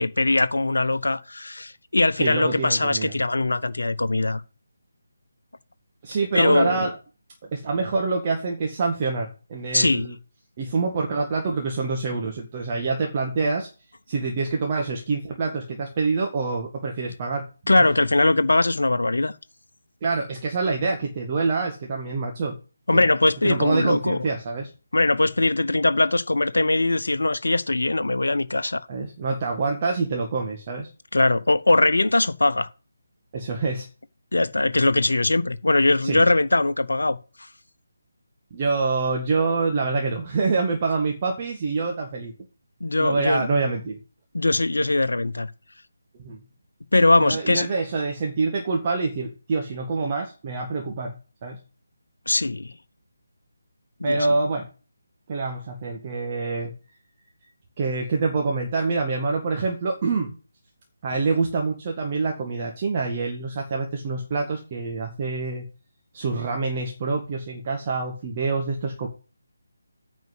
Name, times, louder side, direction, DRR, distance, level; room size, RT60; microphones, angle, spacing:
voice 1, 0.0-4.4 6.3-6.9 9.7-10.1 17.7-19.3 22.9-24.2 24.9-28.9 31.1-32.7 34.3-37.2 42.8-43.5 44.3-45.5 46.9-47.7 52.3-52.7 54.0-54.2, left 2 dB, 65° left, 1.0 m, -21 dB
voice 2, 2.2-3.1 6.0-6.9 7.5-10.2 10.6-13.7 14.1-17.5 17.7-17.9 20.0-22.6 22.9-23.0 23.4-24.7 28.9-30.9 33.3-33.9 36.0-36.3 38.5-42.3 43.0-44.0 46.1-46.4 47.2-51.1 51.4-51.6 54.0-54.7 55.3-56.7 57.8-60.3 61.0-65.7 66.1-69.1, right 4 dB, 25° right, 1.8 m, -26 dB
9.5 x 5.2 x 8.0 m
figure-of-eight pair, 155°, 0 cm